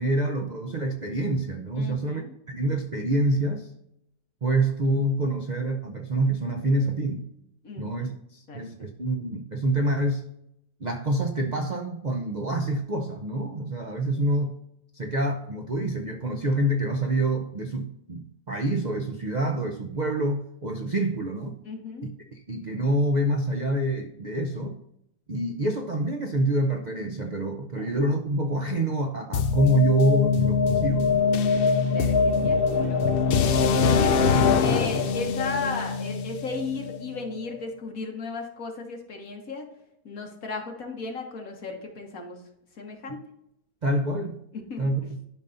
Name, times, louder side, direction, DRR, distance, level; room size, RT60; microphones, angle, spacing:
voice 1, 0.0-2.2 2.5-3.7 4.4-7.2 7.8-10.2 10.8-14.5 14.9-21.6 22.2-24.8 25.3-31.3 43.8-44.4 44.8-45.0, right 1 dB, 50° right, 4 dB, 0.5 m, -26 dB
voice 2, 1.8-2.3 7.6-8.1 8.5-8.6 21.7-22.1 27.8-27.9 31.8-33.4 33.8-34.2 34.6-39.7 40.1-42.4 42.8-43.2 44.5-44.9, left 3 dB, 60° left, 2 dB, 1.8 m, -35 dB
sound 1, 29.3-37.2, left 5 dB, 80° left, 0.5 m, -23 dB
12.0 x 5.4 x 2.6 m, 0.79 s
omnidirectional pair, 1.7 m